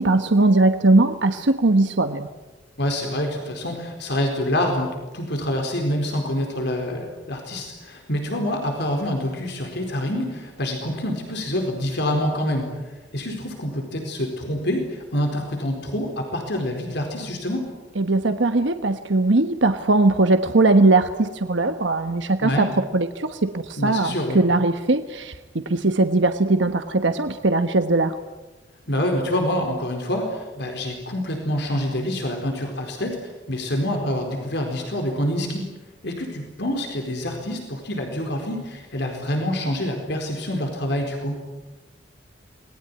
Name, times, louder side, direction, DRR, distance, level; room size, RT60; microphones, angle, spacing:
voice 1, 0.0-2.3 18.0-25.3 25.7-28.2, right 2 dB, 70° right, 8 dB, 1.2 m, -20 dB
voice 2, 2.8-12.7 13.1-17.6 22.4-22.7 23.8-24.4 28.9-35.7 36.0-41.4, left 1 dB, 65° left, 3 dB, 4.4 m, -26 dB
27.5 x 21.0 x 9.7 m, 1.2 s
head